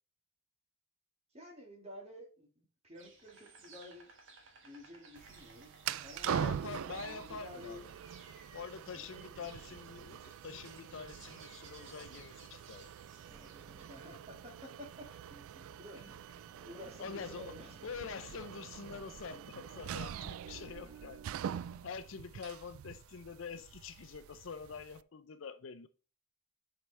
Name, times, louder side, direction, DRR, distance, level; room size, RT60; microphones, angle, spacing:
voice 1, 1.3-4.1 4.6-6.3 7.0-7.8 8.9-9.8 13.9-15.1 15.8-16.0 16.6-17.8, left 1 dB, 30° right, 1.9 m, -51 dB
Insect, 2.9-14.1, right 4 dB, 60° right, 1.5 m, -59 dB
sound 1, 5.2-25.0, right 9 dB, 80° right, 0.3 m, -44 dB
voice 2, 6.2-7.9 8.5-12.9 16.0-16.1 17.0-17.6 17.8-21.2 21.5-25.9, left 5 dB, 65° left, 0.5 m, -46 dB
sound 2, 13.3-14.6 14.8-21.3, equal, 10° right, 0.7 m, -62 dB
7.2 x 4.9 x 3.3 m
head